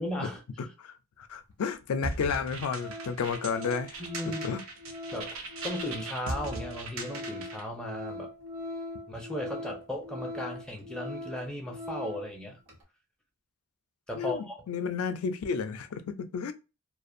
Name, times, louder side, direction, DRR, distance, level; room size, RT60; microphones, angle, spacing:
voice 1, 0.0-0.4 4.0-4.4 5.1-5.4 5.6-8.3 9.1-12.6 14.1-14.6, left 1 dB, 5° left, 0.4 m, -36 dB
voice 2, 0.6-4.6 14.1-16.5, left 6 dB, 75° left, 0.3 m, -32 dB
Organ, 1.7-1.8 2.3-2.5 2.8-12.3 12.7-12.8, left 2 dB, 85° right, 0.9 m, -41 dB
sound 1, 2.0-7.7, right 3 dB, 65° right, 0.5 m, -39 dB
2.4 x 2.1 x 2.5 m
head